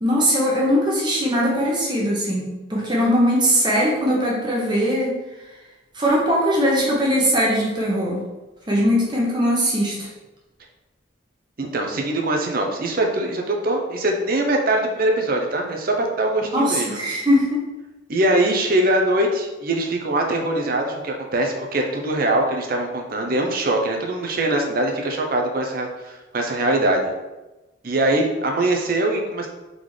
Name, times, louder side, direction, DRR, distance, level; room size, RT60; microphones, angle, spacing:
voice 1, 0.0-5.2 5.9-8.2 8.7-10.1 16.5-17.6, equal, 20° right, -4 dB, 1.0 m, -20 dB
voice 2, 11.6-17.0 18.1-27.1 27.8-29.5, right 1 dB, 45° right, 2 dB, 0.6 m, -22 dB
3.8 x 3.7 x 3.2 m, 1.1 s
head